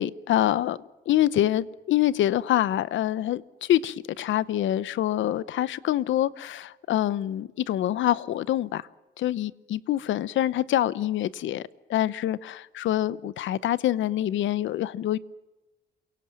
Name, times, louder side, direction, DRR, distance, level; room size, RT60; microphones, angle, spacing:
voice 1, 0.0-8.9 9.2-11.6 11.9-15.2, left 12 dB, 75° left, 0.9 m, -26 dB
28.5 x 18.0 x 7.6 m
cardioid pair, 90°, 20 cm